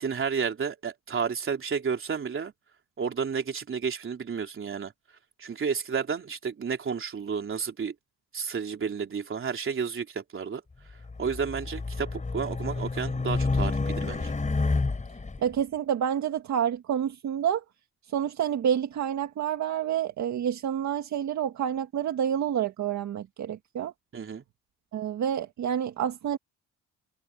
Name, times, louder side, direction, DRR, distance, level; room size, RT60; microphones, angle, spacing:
voice 1, 0.0-2.5 3.0-4.9 5.4-7.9 8.3-10.6 11.2-14.3 24.1-24.4, right 6 dB, 45° right, 3.7 m, -31 dB
Race car auto racing, 11.0-15.4, left 3 dB, 25° left, 5.0 m, -29 dB
voice 2, 15.4-17.6 18.1-23.9 24.9-26.4, right 9 dB, 65° right, 1.9 m, -28 dB
cardioid pair, 90°, 30 cm